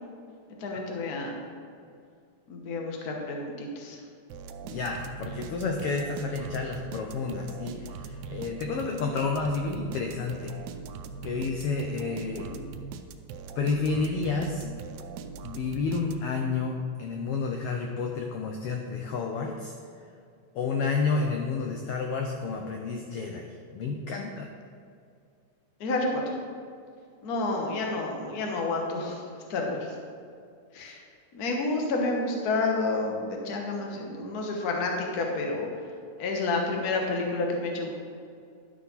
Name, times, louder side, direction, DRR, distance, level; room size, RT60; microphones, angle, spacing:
voice 1, 0.6-1.4 2.5-4.0 12.3-12.5 25.8-26.4 27.2-29.2 29.5-29.9 30.7-31.0 31.3-35.7 36.2-37.9, left 3 dB, 55° left, 1 dB, 1.0 m, -30 dB
sound 1, 4.3-16.5, right 5 dB, 85° right, 2.0 m, -41 dB
voice 2, 4.6-10.5 11.2-12.5 13.6-14.7 15.4-19.7 20.5-24.5 30.8-30.9, left 4 dB, 80° left, 2 dB, 1.3 m, -30 dB
11.0 x 6.1 x 4.1 m, 2.4 s
omnidirectional pair, 3.3 m